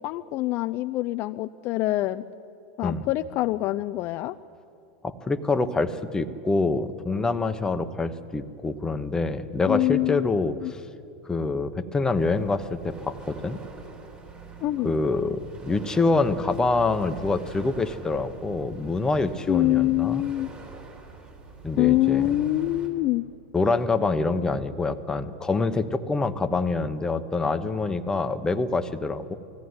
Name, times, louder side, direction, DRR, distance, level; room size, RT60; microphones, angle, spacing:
voice 1, 0.0-2.2 2.8-4.4 9.7-10.3 10.6-10.7 14.6-14.9 19.5-20.5 21.8-23.2, left 16 dB, 50° left, 11 dB, 0.4 m, -25 dB
voice 2, 5.0-10.8 11.2-13.6 14.8-20.2 21.6-22.2 23.5-29.3, left 3 dB, 15° left, 9 dB, 1.0 m, -26 dB
sound 1, 12.2-22.9, right 4 dB, 30° right, 3.5 m, -44 dB
19.0 x 14.5 x 9.6 m, 2.7 s
hypercardioid pair, 105°, 5 cm